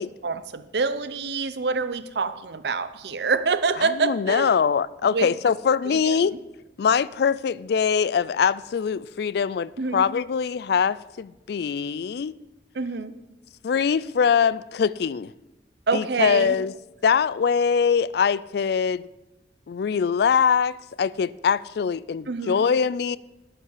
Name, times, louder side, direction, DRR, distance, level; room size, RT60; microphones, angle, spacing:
voice 1, 0.2-4.5 5.0-5.3 5.8-6.2 9.8-10.0 12.7-13.2 15.9-16.5 22.3-22.7, right 4 dB, 65° right, 0.7 m, -26 dB
voice 2, 4.0-6.4 6.8-12.3 13.6-15.3 15.9-16.7 17.0-19.0 19.7-23.2, left 6 dB, 60° left, 0.3 m, -23 dB
12.5 x 5.5 x 8.3 m
head